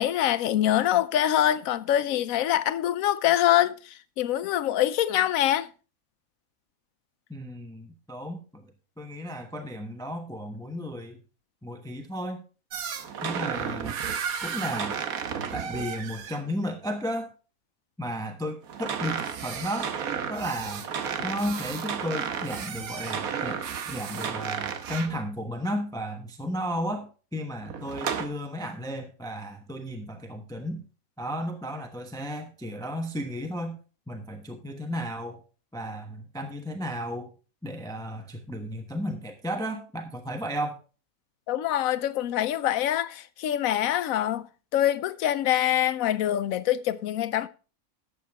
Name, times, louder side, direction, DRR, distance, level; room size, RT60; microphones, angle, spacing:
voice 1, 0.0-5.7 41.5-44.4 44.7-47.5, left 12 dB, 75° left, 1.0 m, -24 dB
voice 2, 7.3-8.7 9.0-11.2 11.6-12.4 13.2-14.0 14.4-15.0 15.5-17.3 18.0-19.9 20.3-20.9 21.2-23.6 23.9-30.8 31.2-33.8 34.1-35.4 35.7-37.3 37.6-40.8, equal, 5° left, 0.9 m, -34 dB
sound 1, 12.7-16.4 18.7-25.2 27.6-28.3, right 7 dB, 80° right, 1.4 m, -33 dB
12.0 x 7.9 x 3.5 m
omnidirectional pair, 1.5 m